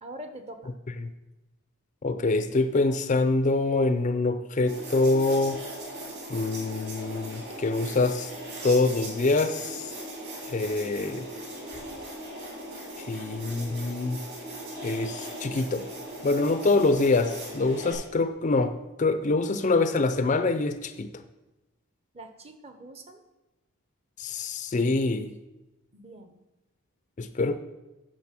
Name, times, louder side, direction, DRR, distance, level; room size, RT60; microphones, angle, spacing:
voice 1, 0.0-0.7 22.1-23.2 25.9-26.3, right 1 dB, 25° right, 8 dB, 0.8 m, -43 dB
voice 2, 2.0-5.6 6.3-8.3 8.6-9.9 10.4-11.3 13.0-14.2 14.8-15.9 16.2-21.2 24.2-25.3 27.2-27.6, left 3 dB, 35° left, 11 dB, 0.4 m, -25 dB
sound 1, 4.7-17.9, right 1 dB, 50° right, 3.4 m, -39 dB
9.4 x 6.3 x 5.9 m, 1.0 s
head